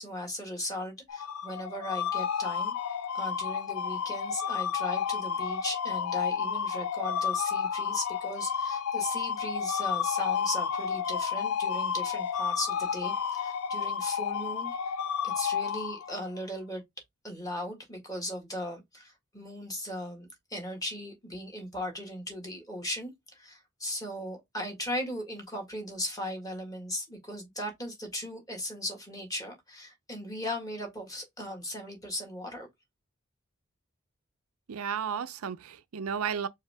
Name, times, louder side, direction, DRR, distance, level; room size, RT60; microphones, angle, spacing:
voice 1, 0.0-2.7 3.1-15.0 15.2-16.8 17.2-32.7, left 1 dB, 15° left, 1.7 m, -37 dB
sound 1, 1.1-16.4, left 7 dB, 85° left, 0.6 m, -31 dB
voice 2, 34.7-36.5, right 7 dB, 80° right, 0.5 m, -33 dB
4.7 x 3.1 x 3.4 m
head